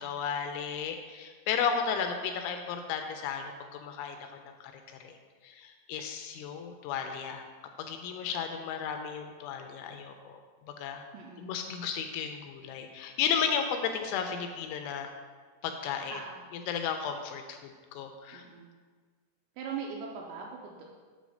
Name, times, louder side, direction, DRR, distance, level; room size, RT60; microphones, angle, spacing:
voice 1, 0.0-4.6 4.9-5.2 5.4-7.5 7.8-10.4 10.8-11.0 11.4-15.1 15.6-16.2 16.7-18.4, left 7 dB, 85° left, 5 dB, 2.8 m, -34 dB
voice 2, 11.1-11.5 16.1-16.4 18.3-18.7 19.6-20.9, right 6 dB, 85° right, -1 dB, 2.6 m, -40 dB
8.2 x 3.6 x 6.3 m, 1.5 s
omnidirectional pair, 5.6 m